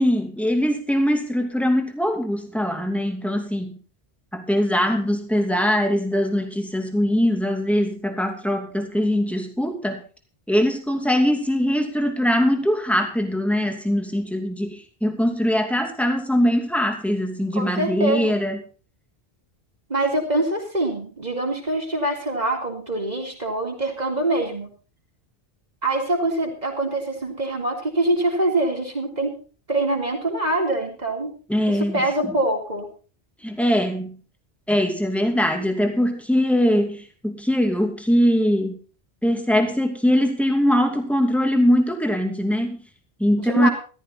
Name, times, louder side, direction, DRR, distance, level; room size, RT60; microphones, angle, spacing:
voice 1, 0.0-3.8 4.3-10.0 10.5-18.6 31.5-32.0 33.4-34.2 34.7-38.8 39.2-42.8 43.2-43.7, equal, ahead, 4 dB, 2.6 m, -22 dB
voice 2, 17.6-18.4 19.9-24.7 25.8-29.3 29.7-31.3 31.7-32.9 43.4-43.7, right 2 dB, 40° right, 1 dB, 3.9 m, -24 dB
14.5 x 14.0 x 4.2 m, 0.37 s
omnidirectional pair, 1.1 m